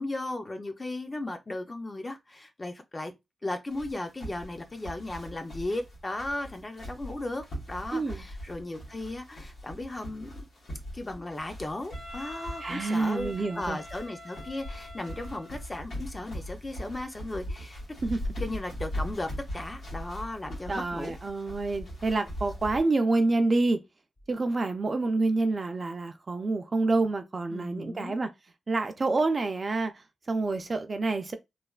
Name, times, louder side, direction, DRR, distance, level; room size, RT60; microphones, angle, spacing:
voice 1, 0.0-3.1 3.4-10.4 10.9-17.8 18.4-21.1 27.5-28.1, left 2 dB, 25° left, 0.5 m, -36 dB
sound 1, 3.7-22.8, equal, 80° left, 1.3 m, -40 dB
voice 2, 7.9-8.2 12.6-13.8 18.0-18.2 20.7-23.8 24.3-28.3 28.7-31.3, right 3 dB, 35° right, 0.4 m, -28 dB
Wind instrument woodwind instrument, 11.9-15.7, left 1 dB, 50° left, 1.2 m, -45 dB
3.2 x 2.1 x 2.3 m
wide cardioid pair, 105°, 0 cm